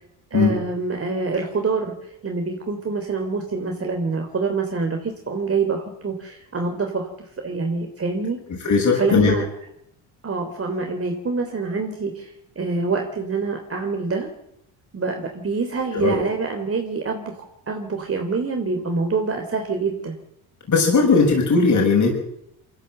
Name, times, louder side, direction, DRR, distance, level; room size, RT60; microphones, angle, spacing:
voice 1, 0.3-1.9 2.2-7.1 7.4-8.4 9.0-9.4 10.2-14.3 14.9-20.2, right 4 dB, 30° right, 3 dB, 3.5 m, -26 dB
voice 2, 8.6-9.4 15.9-16.2 20.7-22.1, left 4 dB, 40° left, 0 dB, 6.6 m, -18 dB
23.0 x 14.0 x 8.0 m, 0.77 s
supercardioid pair, 80°, 44 cm